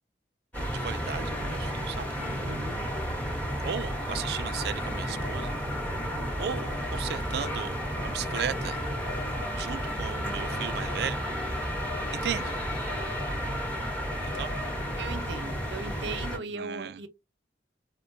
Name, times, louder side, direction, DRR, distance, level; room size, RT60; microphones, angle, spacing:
sound 1, 0.5-16.4, equal, 10° left, 1.0 m, -32 dB
voice 1, 0.7-2.1 3.6-5.5 6.4-7.7 8.0-8.8 9.6-11.7 12.1-12.6 14.2-14.7 16.5-17.0, right 8 dB, 60° right, 0.3 m, -36 dB
voice 2, 2.2-2.9 14.9-17.1, right 3 dB, 90° right, 0.7 m, -38 dB
4.3 x 2.2 x 2.5 m
head